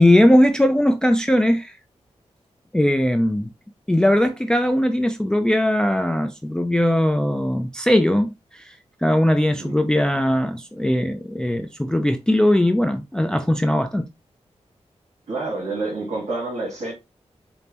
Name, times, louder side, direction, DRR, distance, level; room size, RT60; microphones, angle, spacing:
voice 1, 0.0-1.8 2.7-3.5 3.9-8.3 8.5-14.1, left 1 dB, 5° left, 0.3 m, -19 dB
voice 2, 15.3-16.9, right 3 dB, 70° right, 1.7 m, -28 dB
5.2 x 2.0 x 2.9 m
wide cardioid pair, 85°, 12 cm